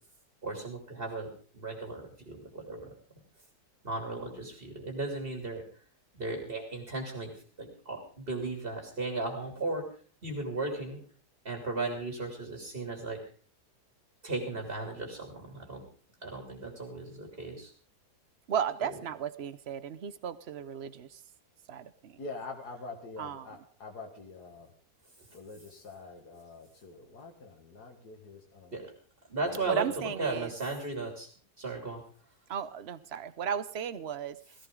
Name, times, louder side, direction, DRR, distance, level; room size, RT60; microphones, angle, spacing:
voice 1, 0.4-1.3 1.5-2.8 3.8-5.6 6.2-7.3 7.6-9.8 10.2-11.0 11.4-13.2 14.2-15.8 16.2-17.7 28.7-28.8 29.3-31.3 31.6-32.0, right 2 dB, 35° right, 3 dB, 3.2 m, -36 dB
voice 2, 18.5-21.2 21.7-22.2 23.2-23.5 29.6-30.5 32.5-34.4, right 8 dB, 50° right, 16 dB, 0.9 m, -35 dB
voice 3, 22.2-24.7 25.3-28.8 29.5-30.3, left 3 dB, 80° left, 2 dB, 2.4 m, -46 dB
16.5 x 16.0 x 3.8 m, 0.43 s
omnidirectional pair, 1.7 m